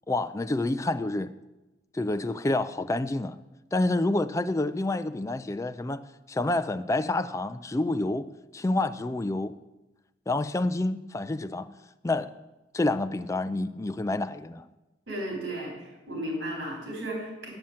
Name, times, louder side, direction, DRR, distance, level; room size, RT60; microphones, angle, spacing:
voice 1, 0.1-1.3 1.9-3.4 3.7-6.0 6.3-8.3 8.5-9.6 10.3-11.7 12.0-12.3 12.7-14.6, left 2 dB, 15° left, 0.3 m, -28 dB
voice 2, 15.1-17.5, right 1 dB, 80° right, 3.9 m, -34 dB
9.0 x 5.7 x 7.4 m
head